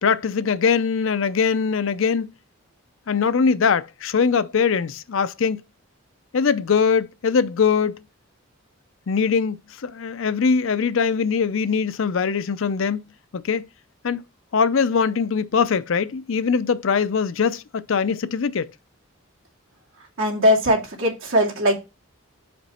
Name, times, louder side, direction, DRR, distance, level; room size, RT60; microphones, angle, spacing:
voice 1, 0.0-2.3 3.1-5.6 6.3-8.0 9.1-13.0 13.3-13.7 14.0-14.2 14.5-18.7, left 6 dB, 65° left, 0.5 m, -22 dB
voice 2, 20.2-21.8, equal, 65° right, 2.1 m, -20 dB
5.1 x 5.1 x 4.2 m
head